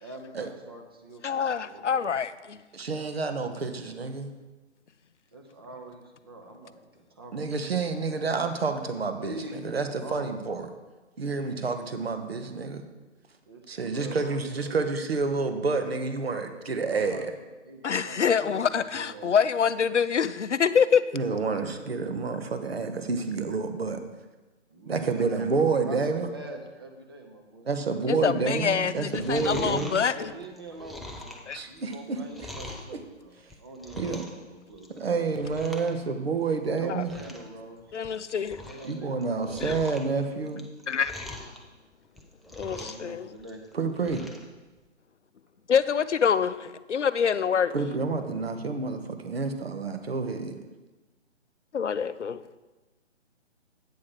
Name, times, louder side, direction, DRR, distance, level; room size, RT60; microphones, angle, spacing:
voice 1, 0.0-1.8 5.3-7.3 7.9-8.1 9.1-10.3 11.2-11.6 13.5-14.7 16.8-17.3 17.6-19.4 24.7-25.3 25.8-27.7 28.0-28.5 29.5-35.5 36.7-38.0 38.6-39.7 42.4-43.6, right 2 dB, 20° right, 3 dB, 0.7 m, -44 dB
voice 2, 1.2-2.6 17.8-21.0 28.1-30.1 31.5-31.6 37.9-38.6 39.6-39.8 40.9-41.3 42.6-43.3 45.7-47.7 51.7-52.4, left 7 dB, 70° left, 15 dB, 0.5 m, -25 dB
voice 3, 2.7-4.3 7.3-9.3 9.6-10.7 11.2-12.8 13.7-17.3 21.1-24.0 24.9-26.3 27.6-29.9 31.5-32.5 32.9-33.0 34.0-34.2 35.0-37.1 38.8-40.6 43.7-44.2 47.7-50.6, right 4 dB, 55° right, 7 dB, 1.0 m, -29 dB
Chewing mastication, 28.9-32.9 33.4-34.4 34.7-35.1 35.4-35.9 36.2-36.3 36.7-36.8 37.0-37.5 37.9-38.9 39.2-41.6 42.0-43.1 43.4-44.4 44.8-44.9, left 1 dB, ahead, 0.3 m, -42 dB
8.5 x 4.8 x 5.9 m, 1.2 s
figure-of-eight pair, 145°, 36 cm